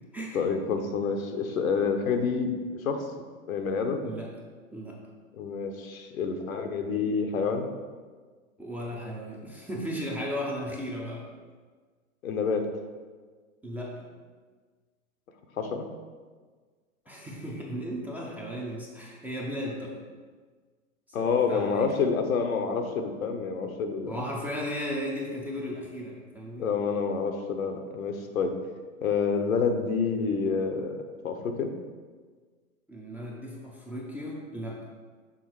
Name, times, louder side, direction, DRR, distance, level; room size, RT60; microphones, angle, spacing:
voice 1, 0.3-2.6 2.8-3.1 3.5-4.0 5.4-7.7 12.2-12.7 15.6-15.9 21.1-24.2 26.6-28.5 29.0-31.7, left 5 dB, 85° left, 5 dB, 0.9 m, -28 dB
voice 2, 8.6-11.2 13.6-14.1 17.1-20.0 21.2-21.8 24.1-26.7 32.9-34.8, equal, 5° right, -3 dB, 0.4 m, -35 dB
6.3 x 3.5 x 4.7 m, 1.5 s
hypercardioid pair, 125°, 40 cm